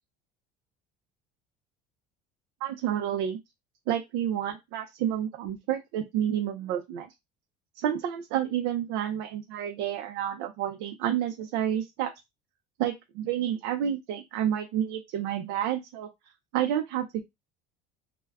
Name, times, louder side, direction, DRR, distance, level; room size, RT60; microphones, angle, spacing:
voice 1, 2.6-3.4 3.9-7.1 7.8-12.1 12.8-16.1 16.5-17.2, right 10 dB, 80° right, 3 dB, 0.5 m, -29 dB
2.3 x 2.1 x 3.4 m, 0.20 s
cardioid pair, 175°, 19 cm